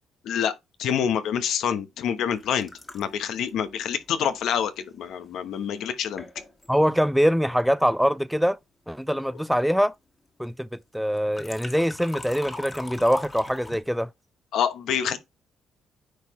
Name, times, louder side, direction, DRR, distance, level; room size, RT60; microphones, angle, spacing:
voice 1, 0.8-2.7 2.9-6.3 14.5-15.2, left 8 dB, 80° left, 1.0 m, -26 dB
sound 1, 2.3-5.1 5.8-5.9 6.2-6.7 11.1-13.8, left 2 dB, 20° left, 1.7 m, -41 dB
voice 2, 6.7-8.6 8.9-9.9 10.4-10.7 10.9-14.1, equal, ahead, 0.5 m, -23 dB
9.4 x 4.5 x 3.1 m
cardioid pair, 90°, 0 cm